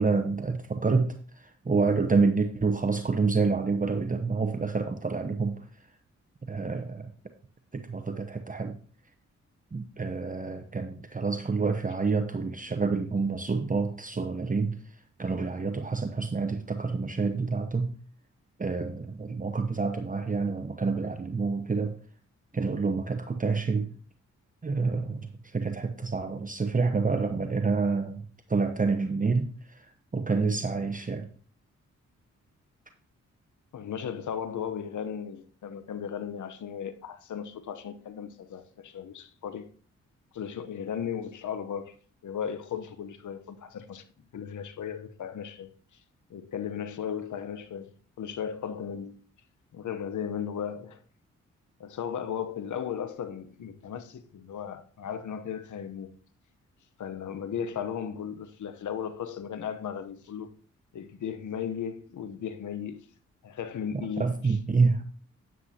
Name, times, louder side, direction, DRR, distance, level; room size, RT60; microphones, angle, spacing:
voice 1, 0.0-5.6 6.5-7.1 7.7-8.8 9.7-14.8 15.2-17.9 18.6-21.9 22.5-23.9 24.6-31.3 64.2-65.0, right 4 dB, 25° right, 0.9 m, -28 dB
voice 2, 33.7-39.7 40.3-41.9 42.2-44.0 44.3-45.7 46.3-47.9 48.2-49.2 49.7-51.0 51.8-56.1 57.0-60.5 60.9-63.1 63.4-64.5, left 8 dB, 70° left, 1.0 m, -36 dB
9.4 x 9.4 x 2.9 m
supercardioid pair, 50°, 31 cm